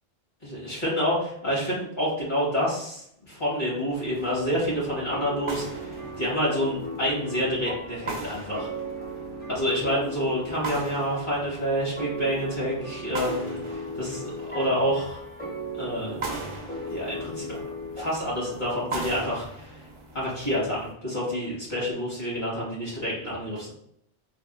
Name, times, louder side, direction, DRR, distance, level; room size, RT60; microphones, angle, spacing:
voice 1, 0.4-8.7 9.5-15.2 15.7-16.3 16.9-17.6 18.0-19.8 20.1-23.7, equal, 50° left, -7 dB, 1.6 m, -28 dB
sound 1, 3.9-20.9, right 2 dB, 45° right, 0.4 m, -41 dB
sound 2, 5.1-18.8, equal, 10° left, 0.6 m, -37 dB
3.5 x 2.0 x 2.4 m, 0.70 s
omnidirectional pair, 1.0 m